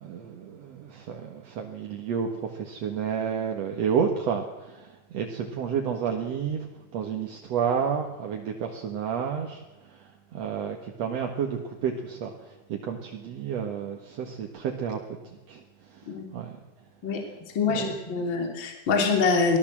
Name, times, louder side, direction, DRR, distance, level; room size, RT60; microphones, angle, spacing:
voice 1, 0.0-6.7 6.9-9.6 10.3-12.3 12.7-15.0 15.5-15.6 16.3-16.5 17.7-17.9, right 7 dB, 55° right, 2 dB, 2.1 m, -30 dB
voice 2, 17.5-19.6, left 4 dB, 30° left, 3 dB, 3.2 m, -25 dB
24.5 x 16.5 x 7.5 m, 1.1 s
omnidirectional pair, 4.6 m